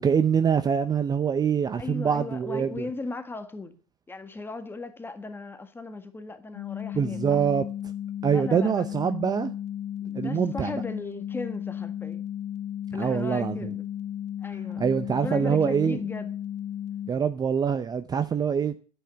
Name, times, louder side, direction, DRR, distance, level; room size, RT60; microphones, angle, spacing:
voice 1, 0.0-2.9 6.9-7.7 8.2-9.5 10.1-10.7 13.0-13.6 14.8-16.0 17.1-18.8, right 7 dB, 20° right, 0.7 m, -24 dB
voice 2, 1.8-3.7 4.1-7.4 8.3-8.9 10.0-12.2 12.9-13.9 14.4-14.8 15.1-16.4, left 3 dB, 10° left, 1.6 m, -37 dB
sound 1, 6.5-17.1, left 10 dB, 35° left, 0.6 m, -34 dB
10.0 x 8.9 x 7.5 m
hypercardioid pair, 105°, 19 cm